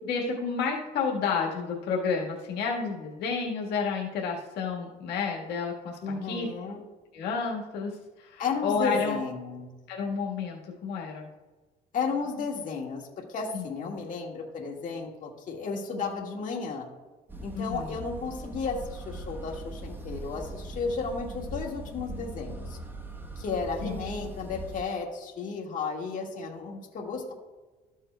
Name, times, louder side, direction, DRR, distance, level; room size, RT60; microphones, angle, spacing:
voice 1, 0.0-6.5 7.1-7.9 8.2-9.2 9.9-11.3 13.5-13.6 17.5-17.9 23.8-24.0, left 5 dB, 80° left, -2 dB, 1.5 m, -30 dB
voice 2, 6.0-6.8 8.4-9.7 11.9-16.9 17.4-22.8 23.3-27.3, left 4 dB, 50° left, -1 dB, 1.7 m, -33 dB
sound 1, 17.3-24.8, right 1 dB, 10° right, 1.0 m, -40 dB
13.0 x 7.3 x 2.2 m, 1.2 s
cardioid pair, 110°, 17 cm